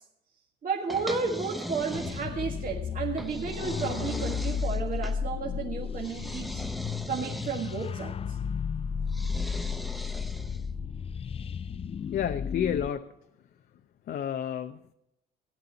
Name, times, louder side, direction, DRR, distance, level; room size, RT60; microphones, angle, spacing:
voice 1, 0.6-6.6 7.1-8.4, right 5 dB, 40° right, -1 dB, 1.8 m, -32 dB
sound 1, 0.9-2.6 3.2-5.2 6.0-7.9 9.1-10.7, equal, ahead, 0.8 m, -39 dB
sound 2, 1.8-12.9, left 6 dB, 30° left, 0.4 m, -34 dB
voice 2, 12.1-13.2 14.1-14.9, left 9 dB, 50° left, 6 dB, 0.8 m, -31 dB
15.0 x 10.5 x 4.1 m, 0.81 s
supercardioid pair, 90°, 21 cm